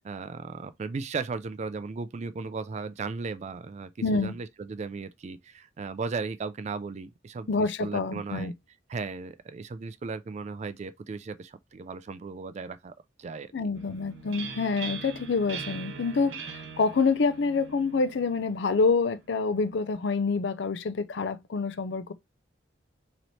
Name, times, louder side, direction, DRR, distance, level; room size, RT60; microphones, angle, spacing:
voice 1, 0.0-8.5 8.9-12.9 13.2-13.5, right 4 dB, 40° right, 0.3 m, -36 dB
voice 2, 4.0-4.4 7.5-8.5 13.5-22.1, left 4 dB, 65° left, 0.5 m, -27 dB
sound 1, 13.7-19.3, right 6 dB, 80° right, 0.9 m, -42 dB
3.2 x 2.9 x 4.0 m
head